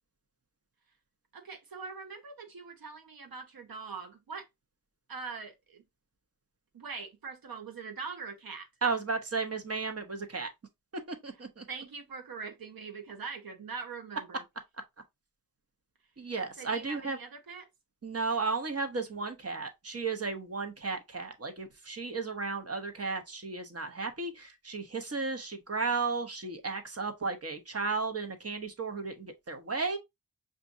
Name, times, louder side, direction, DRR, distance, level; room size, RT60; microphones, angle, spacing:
voice 1, 1.3-4.5 5.1-5.8 6.7-8.7 11.3-11.4 11.7-14.4 16.6-17.7, right 5 dB, 80° right, 0.9 m, -42 dB
voice 2, 8.8-10.5 11.1-11.6 16.2-17.2 18.0-30.0, right 4 dB, 45° right, 0.9 m, -34 dB
5.9 x 2.5 x 2.6 m
wide cardioid pair, 80°, 35 cm